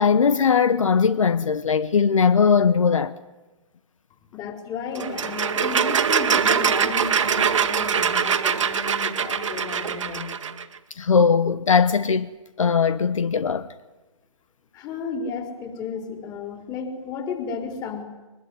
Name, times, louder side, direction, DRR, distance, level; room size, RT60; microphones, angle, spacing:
voice 1, 0.0-3.1 11.0-12.3 12.6-13.7, left 6 dB, 75° left, 1.1 m, -19 dB
voice 2, 4.2-10.3 14.7-18.0, left 5 dB, 20° left, 4.1 m, -33 dB
sound 1, 5.0-10.6, right 7 dB, 70° right, 1.8 m, -23 dB
23.0 x 21.0 x 9.8 m
figure-of-eight pair, 130°, 17 cm